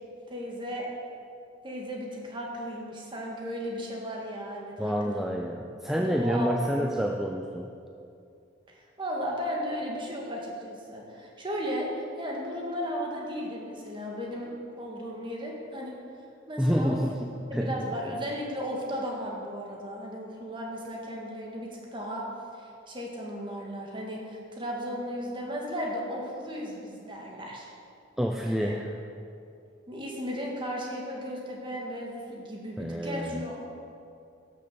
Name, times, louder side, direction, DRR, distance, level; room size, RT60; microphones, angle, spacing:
voice 1, 0.3-0.9 1.6-5.3 5.9-6.9 9.0-11.9 12.2-15.9 16.5-17.0 17.5-22.2 22.9-27.7 28.5-28.7 29.9-33.6, equal, 25° right, -2 dB, 1.9 m, -35 dB
voice 2, 4.8-7.7 16.6-17.9 28.2-28.9 32.8-33.4, equal, ahead, 2 dB, 0.4 m, -28 dB
12.0 x 6.7 x 6.8 m, 2.5 s
head